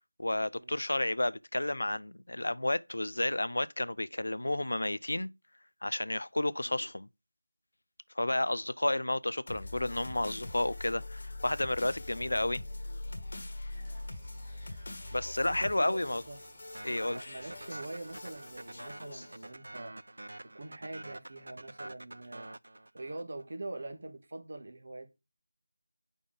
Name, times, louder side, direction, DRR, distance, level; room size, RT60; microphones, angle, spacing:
voice 1, 0.2-5.3 5.8-7.1 8.2-12.6 15.1-16.2 16.8-17.2, left 1 dB, 80° left, 0.4 m, -31 dB
sound 1, 9.5-19.5, left 2 dB, 45° left, 1.4 m, -43 dB
sound 2, 13.7-19.0, right 2 dB, 20° right, 1.5 m, -60 dB
voice 2, 15.2-16.0 16.3-16.4 17.1-19.9 20.4-22.5 22.9-25.1, right 2 dB, 50° right, 1.5 m, -44 dB
sound 3, 16.7-23.4, right 1 dB, 70° right, 0.4 m, -47 dB
5.2 x 5.1 x 5.0 m
figure-of-eight pair, 175°, 0 cm